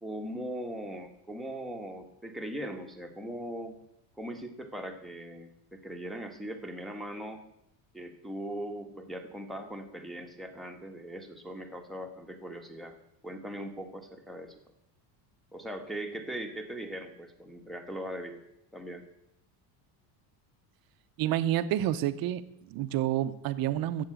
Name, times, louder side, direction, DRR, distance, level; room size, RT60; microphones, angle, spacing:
voice 1, 0.0-3.7 4.2-7.4 7.9-13.0 13.2-14.6 15.5-18.4 18.7-19.0, right 1 dB, ahead, 2 dB, 1.5 m, -40 dB
voice 2, 21.2-24.0, right 12 dB, 45° right, 12 dB, 1.0 m, -29 dB
15.5 x 7.5 x 8.9 m, 0.81 s
cardioid pair, 160°, 48 cm